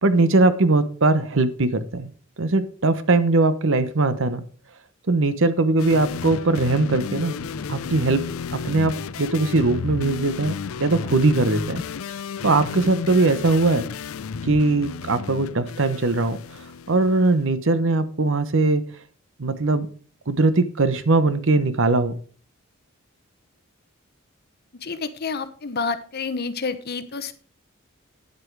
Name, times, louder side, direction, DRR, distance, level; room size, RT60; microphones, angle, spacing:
voice 1, 0.0-2.1 2.4-4.4 5.1-7.4 7.7-8.2 8.6-10.5 10.8-11.8 12.4-13.9 14.4-16.4 16.9-18.8 19.4-19.9 20.3-22.1, right 2 dB, 65° right, 12 dB, 1.0 m, -20 dB
sound 1, 5.8-17.3, left 6 dB, 75° left, 0.5 m, -32 dB
voice 2, 24.8-27.3, left 4 dB, 50° left, 12 dB, 0.9 m, -29 dB
9.6 x 8.0 x 4.7 m, 0.41 s
head